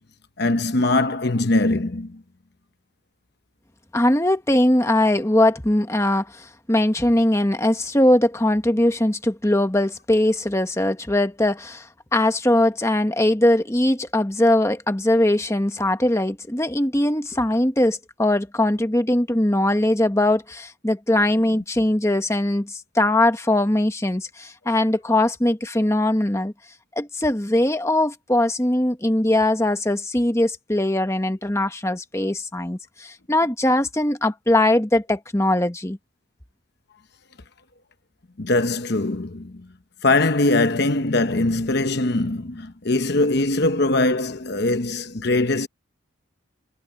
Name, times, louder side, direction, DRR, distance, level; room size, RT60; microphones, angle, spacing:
voice 1, 0.4-2.2 38.4-39.7 40.0-45.7, left 2 dB, 50° left, 0.9 m, -21 dB
voice 2, 3.9-26.5 27.0-36.0, left 1 dB, 15° left, 1.2 m, -21 dB
head